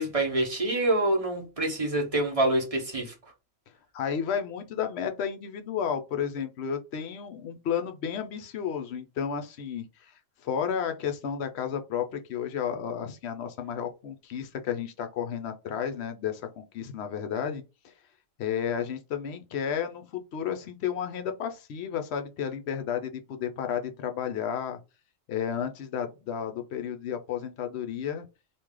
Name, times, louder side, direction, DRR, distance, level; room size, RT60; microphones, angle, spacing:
voice 1, 0.0-3.1, right 1 dB, 30° right, 1.0 m, -26 dB
voice 2, 3.9-10.1 10.4-17.6 18.4-24.8 25.3-28.3, left 8 dB, 65° left, 0.7 m, -32 dB
3.1 x 2.5 x 3.6 m
omnidirectional pair, 1.4 m